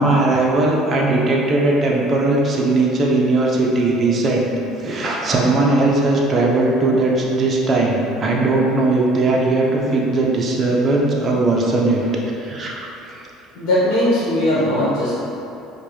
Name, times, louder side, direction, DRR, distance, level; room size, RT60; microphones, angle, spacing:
voice 1, 0.0-4.5 4.8-12.1 12.4-13.2, right 2 dB, 30° right, -2 dB, 0.6 m, -18 dB
voice 2, 13.5-15.1, left 1 dB, 75° left, -9 dB, 1.0 m, -18 dB
5.0 x 2.2 x 3.1 m, 2.8 s
cardioid pair, 125°, 0 cm